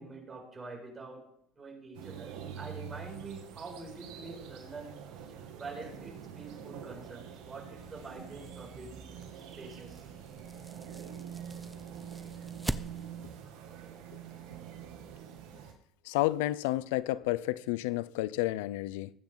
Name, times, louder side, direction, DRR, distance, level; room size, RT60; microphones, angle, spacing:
voice 1, 0.0-5.0 5.6-10.1, right 3 dB, 25° right, 6.8 m, -46 dB
sound 1, 1.9-15.7, right 8 dB, 80° right, 2.4 m, -45 dB
sound 2, 7.8-13.4, right 1 dB, 10° right, 0.8 m, -44 dB
voice 2, 16.0-19.1, left 17 dB, 85° left, 0.5 m, -31 dB
20.5 x 8.9 x 4.0 m
supercardioid pair, 85°, 0 cm